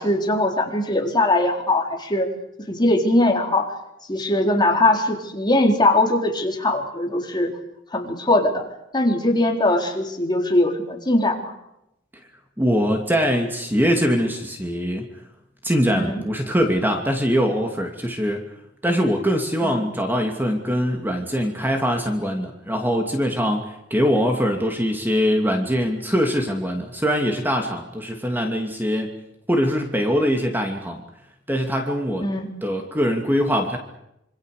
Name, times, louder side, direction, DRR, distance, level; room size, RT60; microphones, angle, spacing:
voice 1, 0.0-2.3 2.7-3.7 4.1-7.5 7.9-8.6 8.9-11.5 15.9-16.2 19.6-19.9 32.2-32.5, left 1 dB, 25° left, 2 dB, 4.2 m, -21 dB
voice 2, 12.6-15.1 15.6-18.4 18.8-29.1 29.5-31.0 31.5-32.2 32.6-33.8, equal, 10° right, 3 dB, 2.8 m, -22 dB
27.0 x 26.5 x 6.8 m, 0.83 s
head